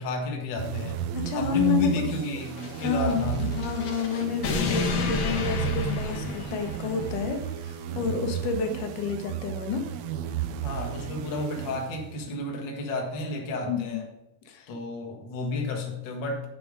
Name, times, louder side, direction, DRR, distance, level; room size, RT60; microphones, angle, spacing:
voice 1, 0.0-1.0 1.3-3.5 10.6-14.0 14.7-16.4, left 2 dB, 45° left, 1 dB, 1.8 m, -31 dB
sound 1, 0.6-12.3, right 9 dB, 80° right, 1.6 m, -34 dB
voice 2, 1.1-2.1 2.8-9.9 13.7-14.0 14.5-14.7, left 5 dB, 80° left, 5 dB, 2.7 m, -29 dB
sound 2, 2.5-7.2, left 3 dB, 60° left, 1.9 m, -31 dB
7.7 x 6.8 x 5.1 m, 0.91 s
omnidirectional pair, 3.7 m